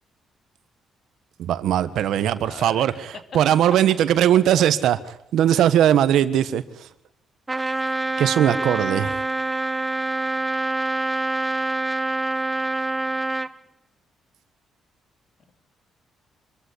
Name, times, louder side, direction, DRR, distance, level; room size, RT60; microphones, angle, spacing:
voice 1, 1.4-2.9 3.3-5.0 5.3-6.9 8.2-9.2, right 11 dB, 80° right, 14 dB, 1.3 m, -19 dB
voice 2, 2.0-3.2 5.4-5.7 15.5-15.6, left 6 dB, 55° left, 10 dB, 2.7 m, -42 dB
Trumpet, 7.5-13.5, right 2 dB, 15° right, 0.9 m, -26 dB
25.5 x 14.0 x 8.5 m, 0.76 s
cardioid pair, 90°, 0 cm